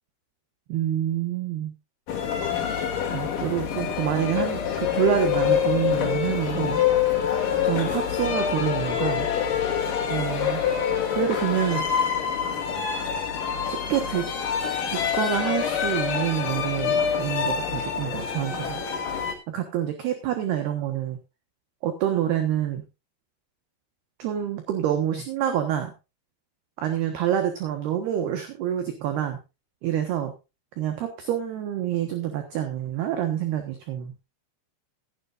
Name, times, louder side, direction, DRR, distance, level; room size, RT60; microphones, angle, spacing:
voice 1, 0.7-1.7 3.1-6.8 7.6-9.3 10.1-10.6 11.1-11.8 13.7-14.3 14.9-18.8 19.5-21.2 21.8-22.8 24.2-25.9 26.8-29.4 29.8-30.3 30.8-34.1, right 10 dB, 65° right, 6 dB, 2.9 m, -27 dB
sound 1, 2.1-19.3, left 8 dB, 45° left, 3.6 m, -26 dB
16.5 x 12.5 x 2.5 m, 0.27 s
omnidirectional pair, 5.9 m